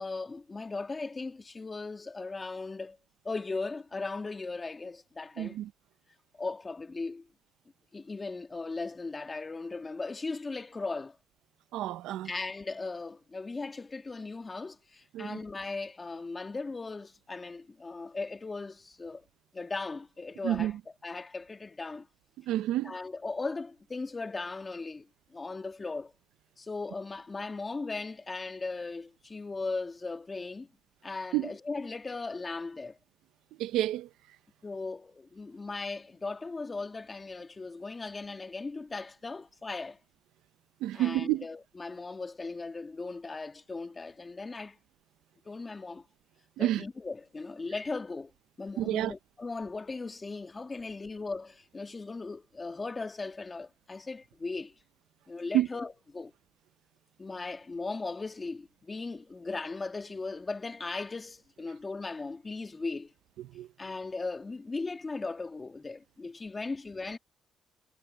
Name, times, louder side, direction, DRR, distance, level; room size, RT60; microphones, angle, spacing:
voice 1, 0.0-3.0 3.2-5.6 6.3-7.3 7.9-11.2 12.2-19.2 19.5-20.8 21.0-22.1 22.8-26.1 26.6-30.7 31.0-33.0 34.6-40.0 40.9-44.8 45.4-46.0 46.6-48.3 48.6-54.7 55.3-56.3 57.2-63.1 63.8-67.2, left 3 dB, 25° left, 1.8 m, -38 dB
voice 2, 5.4-5.7 11.7-12.3 15.1-15.4 20.4-20.7 22.5-23.0 31.3-31.5 33.6-34.1 40.8-41.4 46.6-46.8 48.8-49.1 55.5-55.7 63.5-63.7, right 14 dB, 90° right, 0.7 m, -29 dB
cardioid pair, 90°, 0 cm